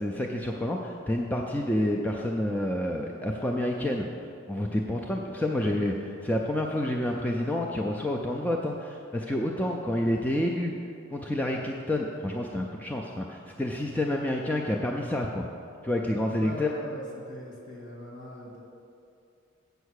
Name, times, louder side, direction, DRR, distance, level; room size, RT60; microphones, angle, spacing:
voice 1, 0.0-4.1 4.5-10.7 11.1-15.5 15.8-16.7, left 1 dB, 10° left, 0 dB, 0.3 m, -29 dB
voice 2, 16.4-18.6, left 1 dB, 55° left, -3 dB, 1.9 m, -41 dB
8.0 x 5.7 x 6.4 m, 2.5 s
head